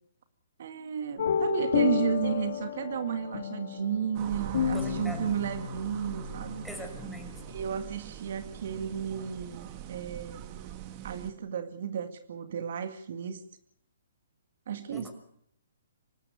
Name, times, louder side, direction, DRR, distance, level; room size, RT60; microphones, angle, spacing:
voice 1, 0.6-6.7 7.5-10.6 11.0-13.4 14.7-15.1, right 8 dB, 60° right, 8 dB, 1.9 m, -33 dB
sound 1, 1.2-7.7, left 7 dB, 60° left, 2.3 m, -32 dB
sound 2, 4.1-11.3, right 11 dB, 35° right, 2.3 m, -43 dB
voice 2, 4.7-5.3 6.6-7.3 14.9-15.1, right 1 dB, ahead, 4 dB, 5.8 m, -40 dB
25.0 x 13.5 x 9.5 m, 0.68 s
hypercardioid pair, 140°, 0 cm